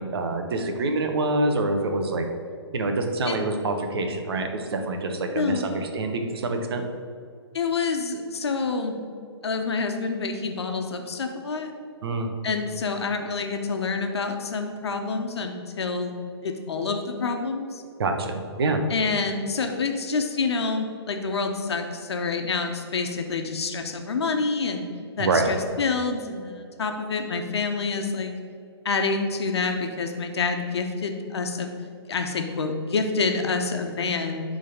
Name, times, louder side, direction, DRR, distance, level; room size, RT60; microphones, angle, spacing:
voice 1, 0.0-2.3 2.7-6.8 12.0-12.3 18.0-18.3 18.6-18.8 25.2-25.5, right 2 dB, 65° right, 4 dB, 1.2 m, -26 dB
voice 2, 5.3-5.9 7.5-9.0 9.4-11.7 12.4-16.2 16.4-17.8 18.9-24.9 25.2-28.3 28.8-31.7 32.1-34.4, left 4 dB, 70° left, 4 dB, 1.2 m, -27 dB
10.5 x 3.9 x 5.2 m, 2.3 s
hypercardioid pair, 135°, 14 cm